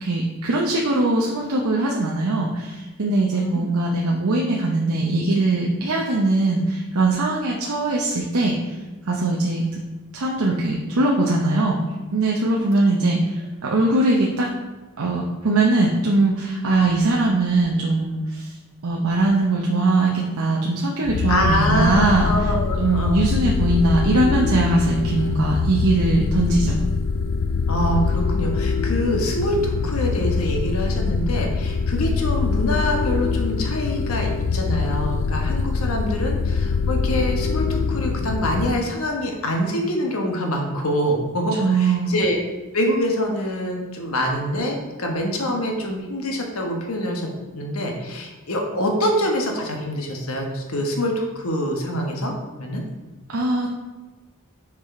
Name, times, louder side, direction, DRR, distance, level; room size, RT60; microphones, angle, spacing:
voice 1, 0.0-8.6 9.1-9.7 10.1-11.8 12.1-14.5 15.0-18.5 18.8-22.3 22.8-26.8 41.6-42.1 53.3-53.7, right 2 dB, 85° right, -1 dB, 0.8 m, -21 dB
voice 2, 3.3-3.6 21.3-23.3 27.7-42.4 42.7-52.8, equal, 80° left, 2 dB, 1.3 m, -25 dB
sound 1, 21.0-38.8, left 4 dB, 60° left, 0.3 m, -23 dB
6.0 x 4.9 x 4.3 m, 1.2 s
head